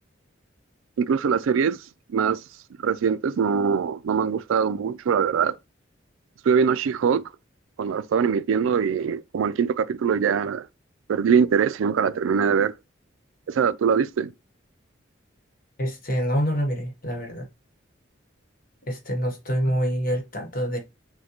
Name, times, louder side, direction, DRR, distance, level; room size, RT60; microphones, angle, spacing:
voice 1, 1.0-1.8 2.1-2.4 2.8-5.6 6.4-7.3 7.8-10.7 11.1-12.7 13.5-14.3, right 6 dB, 85° right, 0.3 m, -22 dB
voice 2, 15.8-17.5 18.8-20.8, equal, 45° left, 1.1 m, -26 dB
6.3 x 2.2 x 2.9 m
head